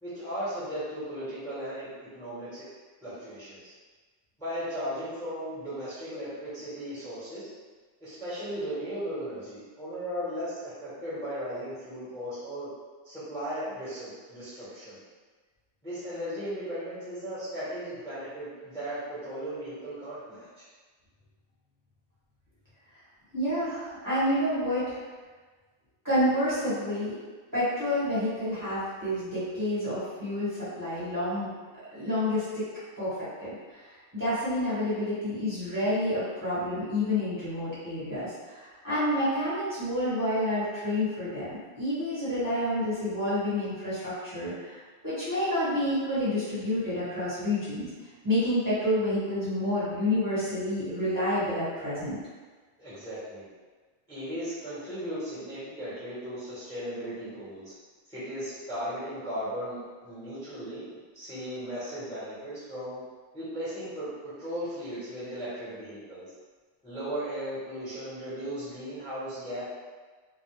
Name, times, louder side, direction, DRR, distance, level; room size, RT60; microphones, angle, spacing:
voice 1, 0.0-2.7 3.0-3.7 4.4-7.5 8.0-12.7 13.0-15.0 15.8-20.6 52.8-53.5 54.1-57.7 58.1-60.8 61.1-63.0 63.3-64.1 64.4-66.2 66.8-69.6, equal, 5° left, -13 dB, 0.9 m, -36 dB
voice 2, 23.3-25.0 26.0-27.2 27.5-31.5 31.9-32.7 33.0-33.5 34.1-44.8 45.0-47.9 48.2-52.2, left 1 dB, 20° right, -14 dB, 1.1 m, -29 dB
2.2 x 2.1 x 3.1 m, 1.4 s
omnidirectional pair, 1.2 m